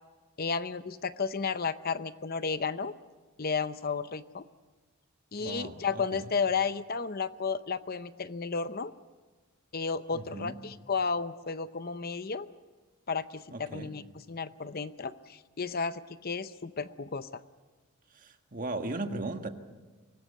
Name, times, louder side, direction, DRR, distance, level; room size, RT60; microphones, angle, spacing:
voice 1, 0.4-2.9 3.4-4.4 5.3-8.9 9.7-12.5 13.1-17.4, left 5 dB, 45° left, 13 dB, 0.7 m, -33 dB
voice 2, 5.4-6.3 10.1-10.5 13.5-14.0 18.1-19.5, right 2 dB, 40° right, 6 dB, 1.6 m, -37 dB
24.5 x 19.5 x 8.2 m, 1.3 s
head